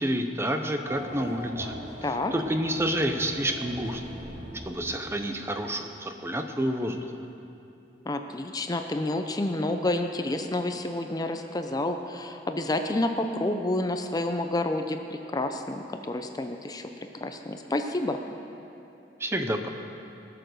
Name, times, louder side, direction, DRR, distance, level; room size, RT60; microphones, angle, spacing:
voice 1, 0.0-1.7 2.0-4.0 4.6-7.1 19.2-19.7, right 1 dB, 15° right, 6 dB, 0.7 m, -29 dB
Race car auto racing / Accelerating revving vroom, 0.9-5.6, equal, 35° right, 1.5 m, -41 dB
voice 2, 2.0-2.3 8.1-16.9 17.2-18.2, left 1 dB, 20° left, 6 dB, 0.6 m, -29 dB
20.0 x 6.9 x 6.5 m, 2.8 s
head